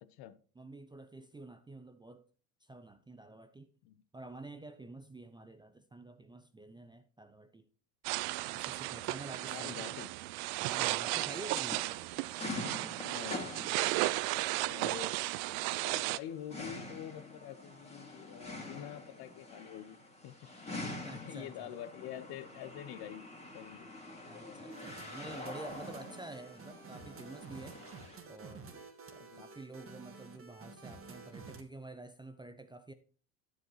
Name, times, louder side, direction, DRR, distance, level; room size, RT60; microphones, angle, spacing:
voice 1, 0.0-0.4 3.8-4.0 9.4-10.1 13.0-15.1 15.8-20.4 21.1-23.3 23.5-23.9 29.2-29.5, left 11 dB, 50° left, 0.9 m, -46 dB
voice 2, 0.6-2.2 2.6-3.7 4.1-7.7 8.5-9.9 10.6-11.8 20.8-21.7 23.8-23.9 24.3-27.8 28.2-32.9, right 2 dB, 10° right, 0.5 m, -49 dB
sound 1, 8.0-16.2, right 19 dB, 55° right, 0.5 m, -34 dB
sound 2, 10.7-28.2, left 2 dB, 15° left, 2.5 m, -46 dB
sound 3, 24.7-31.6, right 4 dB, 25° right, 1.6 m, -51 dB
12.0 x 7.8 x 3.1 m
hypercardioid pair, 80°, 49 cm